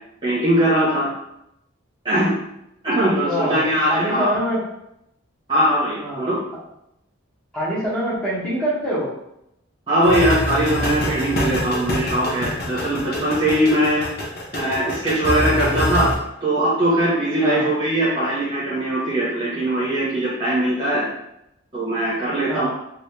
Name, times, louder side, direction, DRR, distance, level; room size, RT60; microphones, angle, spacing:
voice 1, 0.2-1.1 2.0-2.3 2.8-4.4 5.5-6.4 9.9-14.0 14.5-16.1 16.4-21.0 21.7-22.7, right 1 dB, 25° right, -10 dB, 1.1 m, -20 dB
voice 2, 3.2-4.6 6.0-6.3 7.5-9.1 17.4-17.7 22.5-22.7, equal, 5° left, -8 dB, 1.2 m, -25 dB
sound 1, 10.0-16.1, left 1 dB, 50° left, 0.7 m, -26 dB
3.2 x 2.6 x 3.3 m, 0.81 s
head